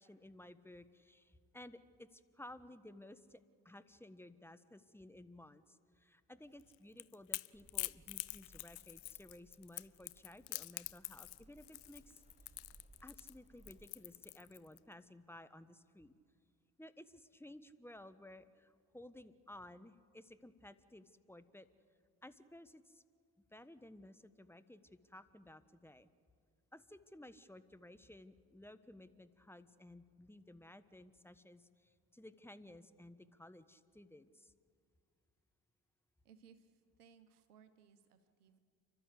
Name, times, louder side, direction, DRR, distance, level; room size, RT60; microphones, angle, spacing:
voice 1, 0.0-3.4 3.6-12.2 13.0-16.1 16.8-21.7 22.2-23.0 23.5-26.1 26.7-34.5, left 1 dB, 5° left, 12 dB, 1.3 m, -56 dB
Crackle / Crack, 6.6-14.8, left 24 dB, 65° left, 0.6 m, -45 dB
sound 1, 7.5-14.0, right 2 dB, 15° right, 1.2 m, -65 dB
voice 2, 36.2-38.6, right 7 dB, 85° right, 11 dB, 1.2 m, -64 dB
29.5 x 12.5 x 8.4 m, 2.2 s
hypercardioid pair, 45°, 44 cm